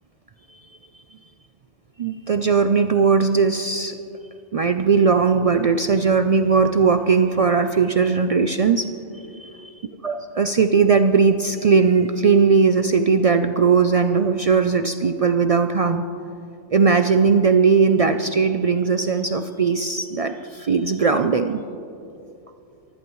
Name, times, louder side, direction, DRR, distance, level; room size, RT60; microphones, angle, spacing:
voice 1, 2.0-4.0 4.5-8.9 9.4-9.6 10.0-16.0 16.7-21.6, right 5 dB, 65° right, 8 dB, 0.3 m, -18 dB
23.0 x 16.0 x 3.1 m, 2.6 s
omnidirectional pair, 1.2 m